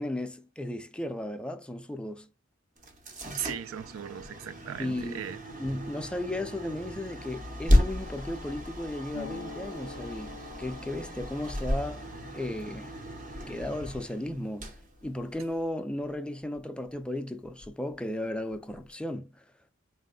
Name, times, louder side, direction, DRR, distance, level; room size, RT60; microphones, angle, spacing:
voice 1, 0.0-2.3 4.8-5.2 5.6-12.1 12.3-12.9 13.5-14.7 15.0-19.4, left 1 dB, 5° left, 0.4 m, -35 dB
sound 1, 2.8-15.7, left 1 dB, 40° right, 0.9 m, -33 dB
voice 2, 3.4-5.4, right 9 dB, 75° right, 0.4 m, -37 dB
Harp, 9.1-16.6 16.9-18.0 18.2-18.9, left 3 dB, 75° left, 0.5 m, -48 dB
4.1 x 2.1 x 3.7 m
head